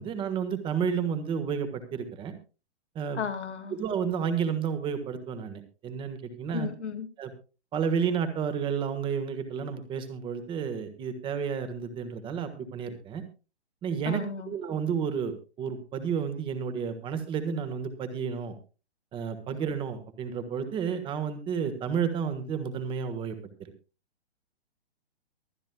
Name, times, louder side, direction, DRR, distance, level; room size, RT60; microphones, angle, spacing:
voice 1, 0.0-2.3 2.9-3.2 3.7-6.7 7.2-7.3 7.7-13.2 13.8-18.5 19.1-23.7, right 7 dB, 15° right, 10 dB, 1.4 m, -31 dB
voice 2, 3.1-3.8 6.5-7.1 14.0-14.5, left 6 dB, 85° left, 6 dB, 2.3 m, -34 dB
23.5 x 9.9 x 2.3 m, 0.33 s
hypercardioid pair, 150°, 33 cm